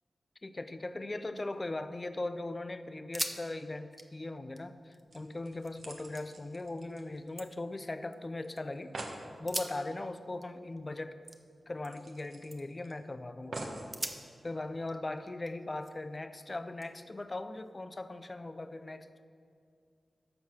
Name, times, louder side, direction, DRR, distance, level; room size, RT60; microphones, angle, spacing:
voice 1, 0.4-8.9 9.4-11.2 11.7-13.9 14.4-19.2, left 2 dB, 35° left, 11 dB, 0.5 m, -39 dB
sound 1, 1.4-2.1 2.5-2.6 3.0-3.4 3.7-5.7 6.2-6.7 7.1-8.6 9.3-12.2 12.5-12.9 13.3-13.5 13.9-16.2 16.8-18.0, right 1 dB, 20° right, 0.9 m, -44 dB
sound 2, 4.8-4.9 5.1-7.7 8.0-8.1 8.4-8.5 8.7-9.2 10.8-10.9 11.2-11.3 11.9-12.9 13.5-13.9 14.6-14.7, right 2 dB, 75° right, 1.2 m, -45 dB
14.0 x 4.7 x 5.9 m, 2.3 s
cardioid pair, 55°, 0 cm